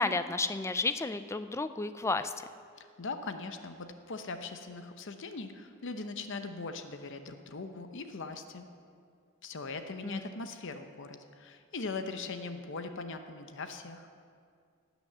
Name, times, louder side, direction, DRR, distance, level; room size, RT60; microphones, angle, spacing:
voice 1, 0.0-2.4 10.0-10.2, left 3 dB, 15° left, 11 dB, 0.4 m, -32 dB
voice 2, 3.0-8.7 9.4-14.1, left 3 dB, 60° left, 8 dB, 0.8 m, -40 dB
18.0 x 6.1 x 6.7 m, 2.2 s
head